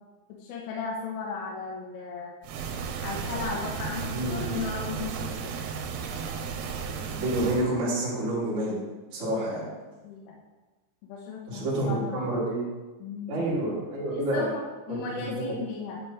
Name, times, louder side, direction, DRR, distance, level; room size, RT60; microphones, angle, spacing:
voice 1, 0.4-2.3 3.0-5.6 10.0-10.3 11.0-12.3 13.0-13.5 14.1-16.0, left 4 dB, 80° left, -3 dB, 3.5 m, -36 dB
sound 1, 2.4-7.7, right 6 dB, 90° right, 3.4 m, -34 dB
voice 2, 4.1-4.6 7.0-8.8 9.1-9.7 11.5-12.6 13.3-14.5 14.9-15.5, right 1 dB, 20° right, -9 dB, 2.2 m, -29 dB
10.5 x 6.1 x 3.6 m, 1.2 s
omnidirectional pair, 5.9 m